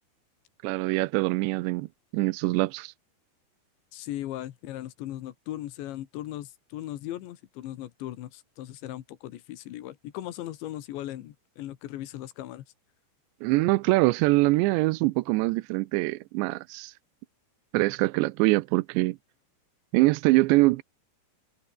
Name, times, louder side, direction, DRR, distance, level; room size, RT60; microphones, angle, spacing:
voice 1, 0.6-1.9 2.1-2.9 13.4-16.9 17.7-19.2 19.9-20.8, right 21 dB, 90° right, 2.9 m, -24 dB
voice 2, 3.9-12.7, left 14 dB, 85° left, 3.8 m, -38 dB
omnidirectional pair, 5.1 m